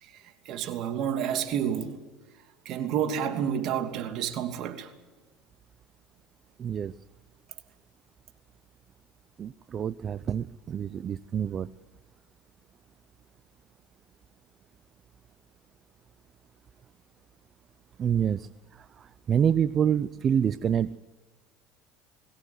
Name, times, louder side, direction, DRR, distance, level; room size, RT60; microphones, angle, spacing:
voice 1, 0.0-2.0 2.6-4.9, right 9 dB, 55° right, 2.8 m, -30 dB
voice 2, 6.6-6.9 9.4-11.7 18.0-18.5 19.0-21.0, right 8 dB, 40° right, 0.7 m, -27 dB
22.0 x 17.5 x 8.1 m
supercardioid pair, 95°, 0 cm